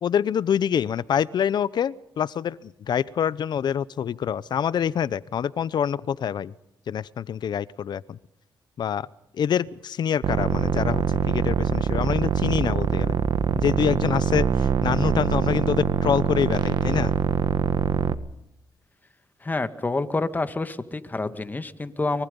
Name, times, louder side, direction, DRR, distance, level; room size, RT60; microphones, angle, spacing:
voice 1, 0.0-6.5 6.9-8.2 8.8-9.1 9.3-13.2 13.6-17.1, left 8 dB, 65° left, 19 dB, 0.8 m, -26 dB
sound 1, 10.2-18.1, right 7 dB, 70° right, 1.3 m, -24 dB
voice 2, 19.4-22.3, left 3 dB, 20° left, 10 dB, 1.9 m, -28 dB
24.0 x 23.0 x 5.5 m, 0.78 s
cardioid pair, 85°, 8 cm